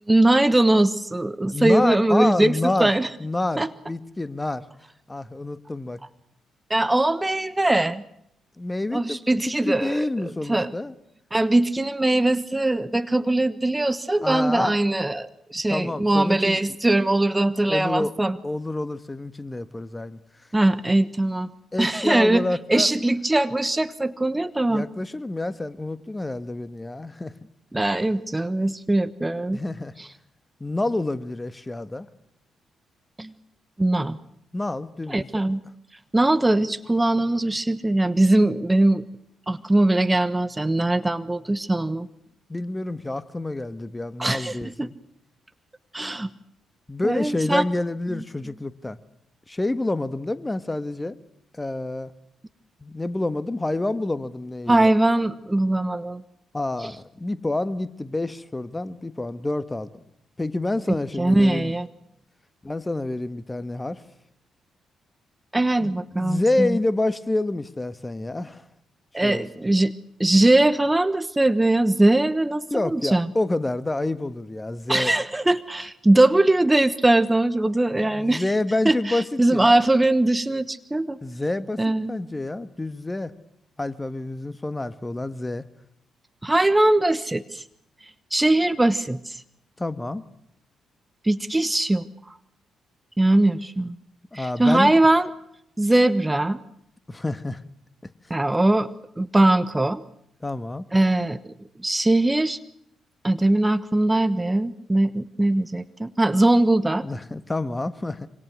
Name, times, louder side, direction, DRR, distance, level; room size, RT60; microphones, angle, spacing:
voice 1, 0.1-3.1 3.6-3.7 6.7-8.0 8.9-10.7 11.3-18.4 20.5-21.5 21.8-24.8 27.7-29.6 30.0-30.1 33.2-33.3 33.8-34.2 35.1-35.6 36.1-39.0 39.5-42.1 44.2-44.9 45.9-46.3 47.0-47.6 48.1-48.2 54.7-56.2 56.8-56.9 60.9-61.9 65.5-66.8 69.1-69.9 70.2-73.3 74.9-78.4 78.8-81.2 81.8-82.2 86.4-87.6 88.3-89.4 91.2-92.1 93.2-94.0 94.3-95.3 95.8-96.6 98.3-98.9 99.2-100.0 100.9-101.5 101.8-102.6 103.2-107.1, right 2 dB, 15° right, 14 dB, 1.2 m, -21 dB
voice 2, 1.4-2.9 3.2-3.6 3.9-4.6 5.1-6.0 8.6-10.9 14.2-14.8 15.7-16.6 17.7-18.1 18.4-20.2 21.7-22.9 24.7-27.3 29.5-29.9 30.6-32.1 34.5-35.3 42.5-44.9 46.9-49.0 49.5-51.2 51.5-52.1 52.8-54.9 56.5-60.0 60.4-61.7 62.6-64.0 65.8-68.6 69.2-69.5 72.7-75.1 78.0-79.8 81.2-81.8 82.1-83.3 83.8-85.6 89.8-90.2 94.3-94.9 97.1-97.6 100.4-100.8 107.0-108.3, left 2 dB, 20° left, 15 dB, 1.6 m, -28 dB
26.5 x 25.0 x 6.3 m, 0.74 s
hypercardioid pair, 40°, 0 cm